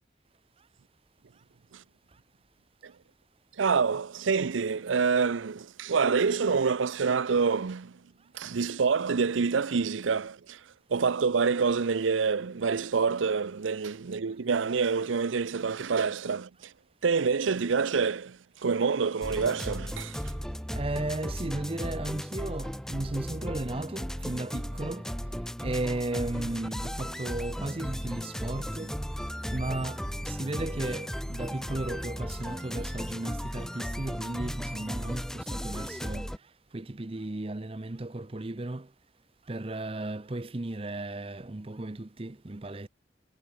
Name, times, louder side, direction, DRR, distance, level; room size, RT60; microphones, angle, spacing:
voice 1, 3.6-7.9 8.3-10.6 10.9-16.7 17.0-20.2, right 5 dB, 90° right, 0.6 m, -27 dB
sound 1, 19.2-36.4, equal, 5° left, 2.2 m, -35 dB
voice 2, 20.7-25.1 25.6-29.0 29.5-38.9 39.5-42.9, right 2 dB, 30° right, 0.7 m, -35 dB
head